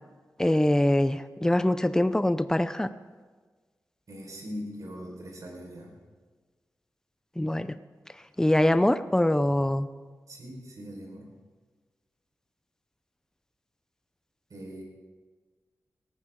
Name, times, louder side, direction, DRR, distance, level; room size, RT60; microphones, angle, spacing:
voice 1, 0.4-2.9 7.4-7.7 8.4-9.9, left 1 dB, 10° left, 12 dB, 0.6 m, -23 dB
voice 2, 4.1-5.9 10.3-11.3 14.5-14.8, equal, 65° right, 0 dB, 4.8 m, -41 dB
18.5 x 15.5 x 3.8 m, 1.4 s
wide cardioid pair, 85°, 6 cm